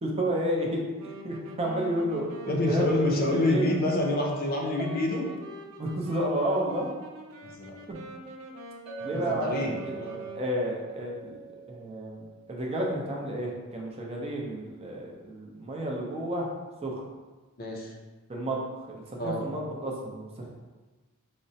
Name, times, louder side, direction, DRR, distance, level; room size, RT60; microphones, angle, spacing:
voice 1, 0.0-2.9 3.3-3.7 5.8-6.9 7.9-8.0 9.0-9.9 10.3-11.4 11.7-16.5 16.8-17.0 18.3-18.6 18.9-20.5, right 1 dB, 30° right, -1 dB, 0.5 m, -31 dB
Wind instrument woodwind instrument, 1.0-10.5, right 2 dB, 90° right, 0.4 m, -44 dB
voice 2, 2.4-5.3 7.4-7.8 9.1-10.2 17.6-17.9 19.2-19.4, left 2 dB, 45° left, 0 dB, 0.5 m, -27 dB
Chink clink, 8.9-13.3, right 7 dB, ahead, 0.8 m, -42 dB
4.9 x 2.1 x 2.7 m, 1.3 s
head